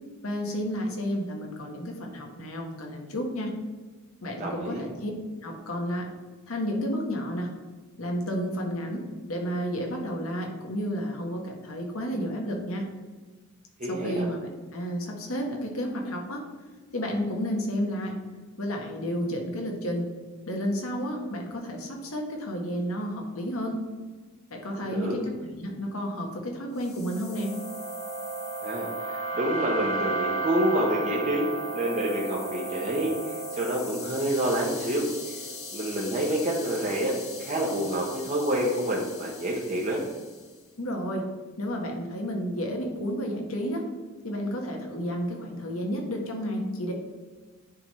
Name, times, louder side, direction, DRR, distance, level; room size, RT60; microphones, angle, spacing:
voice 1, 0.2-3.5 4.2-5.1 5.4-6.1 6.5-7.5 8.0-12.9 13.8-16.5 16.9-18.2 18.6-20.1 20.5-23.8 24.5-27.6 40.8-41.3 41.6-43.9 44.2-46.9, equal, 85° left, 1 dB, 1.4 m, -31 dB
voice 2, 4.4-4.8 13.8-14.2 24.9-25.2 28.6-35.4 35.7-40.0, right 1 dB, 35° right, -4 dB, 1.0 m, -28 dB
sound 1, 26.9-40.2, right 2 dB, 30° left, 1.3 m, -35 dB
9.8 x 3.6 x 4.2 m, 1.3 s
head